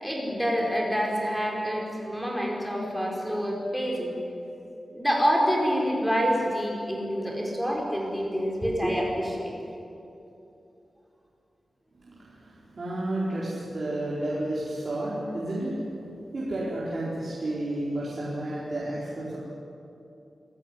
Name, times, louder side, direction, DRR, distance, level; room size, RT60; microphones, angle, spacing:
voice 1, 0.0-4.1 4.9-9.5, equal, ahead, -2 dB, 5.1 m, -27 dB
voice 2, 12.0-15.7 16.3-19.4, right 1 dB, 40° right, -7 dB, 4.5 m, -31 dB
27.0 x 15.5 x 9.9 m, 2.8 s
wide cardioid pair, 175°, 0 cm